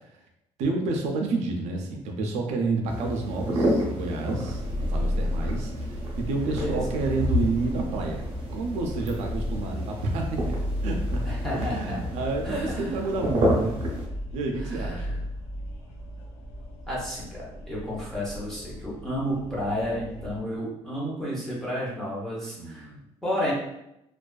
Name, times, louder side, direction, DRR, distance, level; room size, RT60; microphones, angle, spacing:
voice 1, 0.6-8.2 8.5-10.5 10.8-13.8 14.3-15.2 22.6-23.0, right 3 dB, 80° right, 1 dB, 0.4 m, -30 dB
sound 1, 2.9-14.1, equal, 45° right, 0.7 m, -30 dB
sound 2, 4.4-20.4, equal, 65° left, 0.6 m, -35 dB
voice 2, 6.4-6.8 11.3-12.0 12.4-12.9 14.6-15.2 16.9-22.9 23.2-23.5, equal, 5° left, -7 dB, 0.7 m, -31 dB
2.5 x 2.3 x 2.2 m, 0.85 s
cardioid pair, 175°, 11 cm